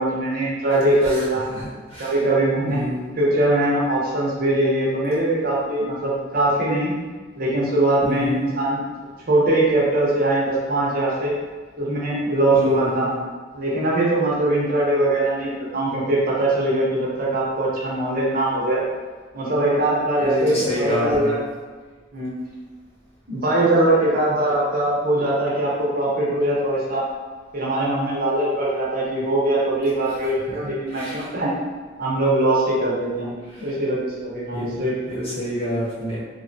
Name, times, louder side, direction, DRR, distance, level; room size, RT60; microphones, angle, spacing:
voice 1, 0.0-1.4 2.0-2.8 3.2-6.9 7.4-8.8 9.3-11.3 11.8-13.1 13.5-18.8 19.3-21.4 22.1-22.3 23.3-27.1 27.5-31.5 32.0-35.0, right 1 dB, 45° right, -5 dB, 0.7 m, -21 dB
voice 2, 1.5-2.1 2.7-3.1 8.0-8.5 12.5-13.2 20.2-21.4 30.6-31.3 33.6-33.7 34.5-36.2, left 1 dB, 30° left, -8 dB, 0.9 m, -28 dB
3.3 x 2.1 x 2.6 m, 1.4 s
head